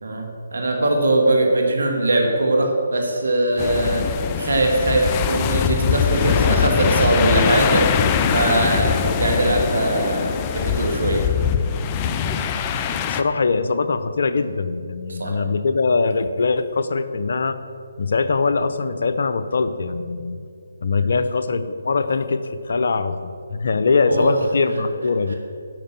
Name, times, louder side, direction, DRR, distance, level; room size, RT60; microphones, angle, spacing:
voice 1, 0.0-4.0 4.4-7.9 8.3-11.3 15.1-15.4 21.0-21.2 24.1-24.3, right 2 dB, 75° right, 2 dB, 1.8 m, -21 dB
sound 1, 3.6-13.2, left 7 dB, 25° left, 0.5 m, -22 dB
voice 2, 13.1-17.6 18.0-20.4 20.8-23.2 23.5-25.3, left 4 dB, 60° left, 10 dB, 0.7 m, -22 dB
10.5 x 5.4 x 7.4 m, 2.3 s
figure-of-eight pair, 150°, 0 cm